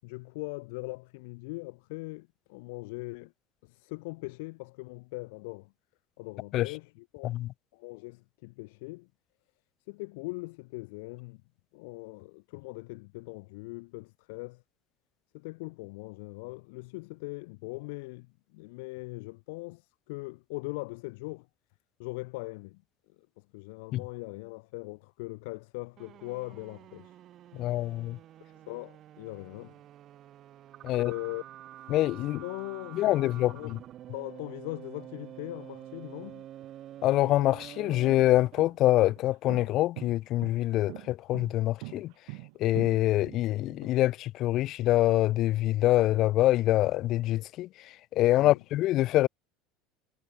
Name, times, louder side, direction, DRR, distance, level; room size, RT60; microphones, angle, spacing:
voice 1, 0.0-3.3 3.6-5.7 6.2-7.4 7.7-9.1 9.9-11.4 11.7-14.6 15.3-21.5 22.0-22.8 23.4-27.2 27.6-27.8 28.7-29.8 31.0-31.5 32.2-33.7 34.1-36.5 48.3-48.6, left 26 dB, 75° left, 7.0 m, -41 dB
sound 1, 26.0-38.7, right 12 dB, 40° right, 3.8 m, -48 dB
voice 2, 27.6-28.2 30.8-31.1 31.9-32.4 32.9-33.8 37.0-42.1 42.6-47.7 48.1-49.3, left 15 dB, 50° left, 1.6 m, -25 dB
sound 2, 36.6-36.7 37.4-43.9, right 40 dB or more, 70° right, 5.5 m, -44 dB
supercardioid pair, 140°, 0 cm